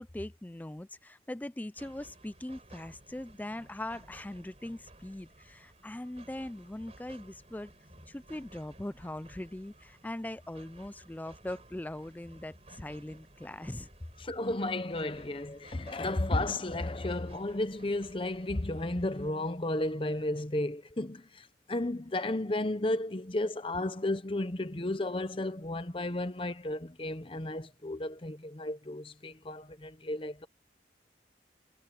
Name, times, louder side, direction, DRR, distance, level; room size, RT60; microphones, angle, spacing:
voice 1, 0.0-7.7 8.1-13.9, left 1 dB, 10° left, 0.3 m, -41 dB
sound 1, 1.8-19.3, right 2 dB, 35° right, 4.3 m, -56 dB
voice 2, 14.2-30.5, left 1 dB, 30° left, 0.8 m, -33 dB
head